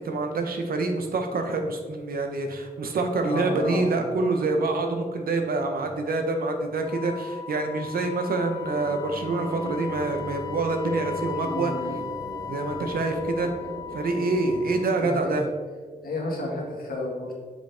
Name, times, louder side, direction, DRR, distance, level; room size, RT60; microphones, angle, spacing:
voice 1, 0.0-11.7 12.5-13.5 13.9-15.5, right 3 dB, 80° right, 5 dB, 0.9 m, -26 dB
voice 2, 3.2-4.0 11.4-12.0 15.0-15.4 16.0-17.3, left 2 dB, 85° left, -2 dB, 1.8 m, -32 dB
Wind instrument woodwind instrument, 6.8-15.1, left 8 dB, 25° left, 0.5 m, -38 dB
sound 1, 8.4-15.9, right 1 dB, 50° right, 1.4 m, -40 dB
7.5 x 5.3 x 3.5 m, 1.5 s
wide cardioid pair, 165°, 15 cm